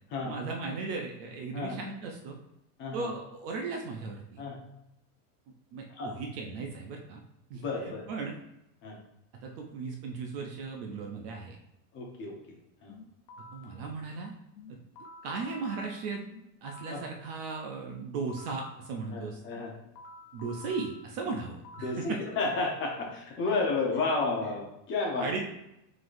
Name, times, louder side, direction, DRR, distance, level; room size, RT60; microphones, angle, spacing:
voice 1, 0.2-2.4 2.9-4.4 5.7-7.2 7.5-7.6 8.1-8.4 9.4-11.6 13.5-14.3 15.2-16.2 16.6-19.4 20.3-22.2 25.2-25.5, right 4 dB, 40° right, 1 dB, 0.5 m, -36 dB
voice 2, 7.5-8.1 8.8-9.0 11.9-12.4 12.8-12.9 16.9-17.0 19.1-19.7 21.8-25.3, left 3 dB, 25° left, 0 dB, 0.7 m, -31 dB
sound 1, 12.9-13.7 14.6-17.1 17.9-18.7 19.6-22.1, left 2 dB, 75° left, 1.0 m, -50 dB
4.6 x 3.9 x 2.5 m, 0.83 s
supercardioid pair, 165°, 47 cm